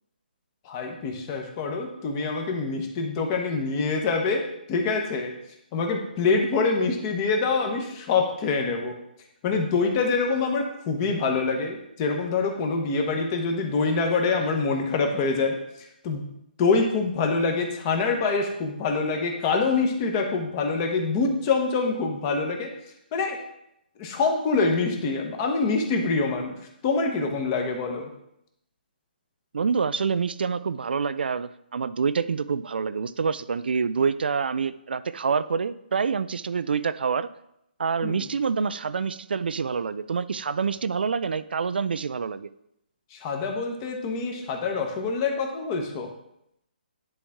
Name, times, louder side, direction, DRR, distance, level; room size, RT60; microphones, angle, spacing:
voice 1, 0.6-5.3 5.7-8.9 9.4-15.6 16.0-16.2 16.6-22.7 23.1-23.4 24.0-26.6 26.8-28.1 38.0-38.3 43.1-46.1, left 4 dB, 25° left, 3 dB, 1.0 m, -25 dB
voice 2, 29.5-37.3 37.8-42.5, right 5 dB, 75° right, 14 dB, 0.4 m, -27 dB
10.0 x 4.1 x 3.6 m, 0.79 s
hypercardioid pair, 160°, 5 cm